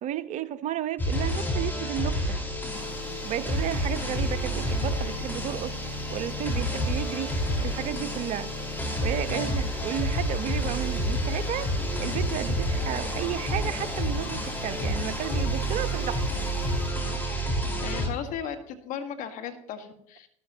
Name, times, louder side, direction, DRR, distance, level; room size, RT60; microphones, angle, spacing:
voice 1, 0.0-2.4 3.2-7.3 7.6-8.5 9.0-16.2, right 11 dB, 45° right, 14 dB, 0.9 m, -33 dB
sound 1, 1.0-18.1, equal, 10° left, 4.7 m, -29 dB
sound 2, 2.7-16.9, left 1 dB, 85° left, 4.6 m, -44 dB
voice 2, 9.3-9.6 17.8-20.3, left 8 dB, 50° left, 7 dB, 1.7 m, -36 dB
13.5 x 13.0 x 3.0 m, 0.76 s
figure-of-eight pair, 70°, 17 cm